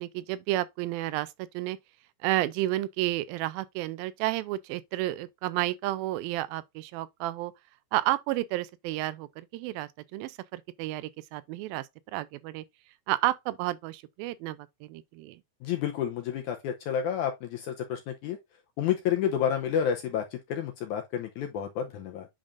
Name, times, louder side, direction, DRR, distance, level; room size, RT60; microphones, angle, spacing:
voice 1, 0.0-1.8 2.2-7.5 7.9-11.9 12.1-12.6 13.1-15.4, right 16 dB, 85° right, 2.3 m, -31 dB
voice 2, 15.6-18.4 18.8-20.2 20.5-22.3, left 9 dB, 80° left, 1.8 m, -30 dB
8.7 x 5.1 x 2.5 m
omnidirectional pair, 4.1 m